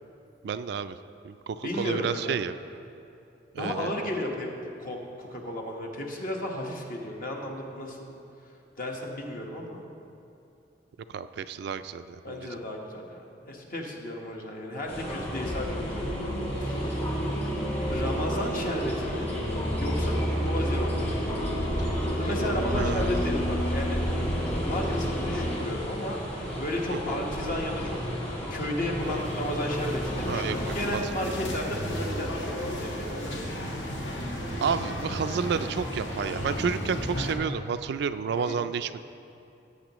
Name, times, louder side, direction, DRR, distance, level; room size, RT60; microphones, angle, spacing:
voice 1, 0.4-1.0 1.2-2.6 3.5-4.0 11.1-12.5 20.3-20.5 21.8-22.0 22.7-23.3 26.9-27.2 30.2-31.1 34.6-39.0, right 6 dB, 65° right, 11 dB, 0.3 m, -31 dB
voice 2, 1.6-2.4 3.6-8.1 8.8-9.8 12.2-16.2 16.6-17.1 17.9-19.3 19.8-21.0 22.2-24.0 24.6-28.0 28.5-32.3 32.7-33.5 38.4-38.6, left 1 dB, 50° left, 0 dB, 1.3 m, -34 dB
sound 1, 14.9-30.9, equal, 35° left, 2.2 m, -30 dB
sound 2, 29.0-37.3, equal, 85° left, 1.6 m, -34 dB
16.5 x 8.2 x 3.0 m, 2.7 s
head